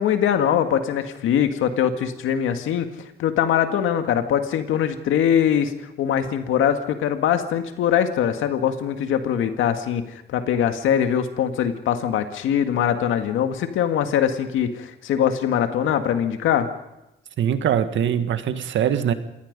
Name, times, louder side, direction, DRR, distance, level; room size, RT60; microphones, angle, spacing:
voice 1, 0.0-2.9 3.2-5.7 6.0-16.7, left 9 dB, 85° left, 7 dB, 1.9 m, -22 dB
voice 2, 17.4-19.1, right 9 dB, 70° right, 10 dB, 1.7 m, -22 dB
27.5 x 18.0 x 5.4 m, 0.93 s
cardioid pair, 90°, 20 cm